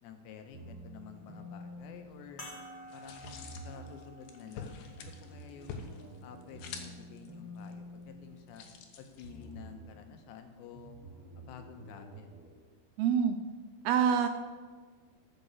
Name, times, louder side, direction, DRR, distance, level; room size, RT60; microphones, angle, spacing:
voice 1, 0.0-2.5 2.9-5.9 6.2-8.7 9.0-11.0 11.4-12.3, left 7 dB, 85° left, 6 dB, 3.3 m, -50 dB
sound 1, 0.5-2.8 3.2-4.1 4.7-8.9 9.2-10.1 10.7-12.5, equal, 30° right, 1.8 m, -49 dB
sound 2, 2.4-7.2 8.0-8.1 10.2-10.3, equal, 55° left, 0.5 m, -52 dB
sound 3, 2.9-9.6, left 6 dB, 70° left, 2.6 m, -48 dB
voice 2, 13.0-13.4 13.8-14.3, right 7 dB, 80° right, 6 dB, 2.3 m, -26 dB
13.5 x 6.2 x 7.1 m, 1.4 s
omnidirectional pair, 4.9 m